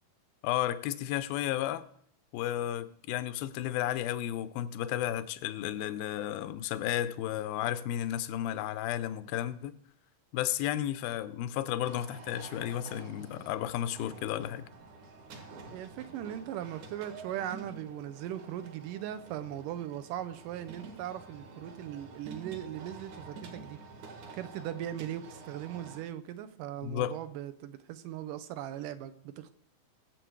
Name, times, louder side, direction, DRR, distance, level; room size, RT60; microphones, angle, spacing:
voice 1, 0.4-1.8 2.3-9.8 10.3-14.7 26.8-27.2, left 12 dB, 85° left, 2.5 m, -33 dB
sound 1, 11.8-26.0, right 3 dB, 60° right, 3.1 m, -49 dB
voice 2, 15.7-23.8 24.3-29.5, right 11 dB, 75° right, 2.2 m, -39 dB
21.0 x 7.7 x 4.7 m
omnidirectional pair, 4.1 m